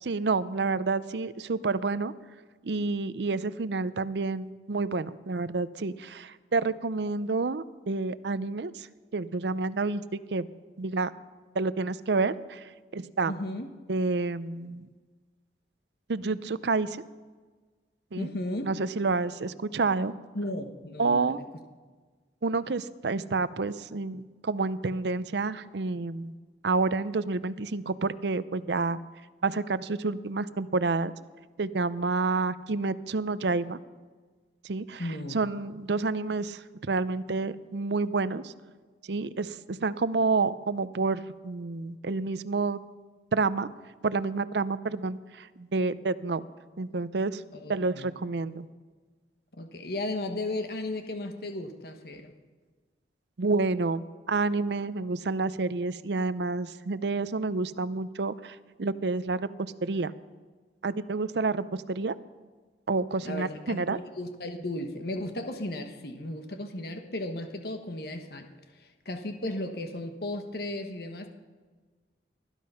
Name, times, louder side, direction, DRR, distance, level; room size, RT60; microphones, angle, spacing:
voice 1, 0.0-2.1 2.6-8.9 9.1-10.5 10.8-11.1 11.5-12.6 12.9-13.3 13.9-14.9 16.1-17.0 18.1-18.3 18.6-20.1 21.0-21.4 22.4-26.3 26.6-29.0 29.4-31.1 31.6-33.8 34.6-35.0 35.3-38.5 39.1-42.8 43.3-43.7 44.0-46.4 46.8-47.4 47.7-48.7 53.4-60.1 60.8-62.1 62.9-64.0, right 3 dB, 70° right, 15 dB, 0.6 m, -29 dB
voice 2, 13.3-13.7 18.2-18.7 20.3-21.2 35.0-35.4 47.5-48.1 49.6-52.3 63.2-68.5 68.8-71.3, left 1 dB, 60° left, 6 dB, 1.3 m, -35 dB
20.0 x 11.5 x 5.7 m, 1.4 s
head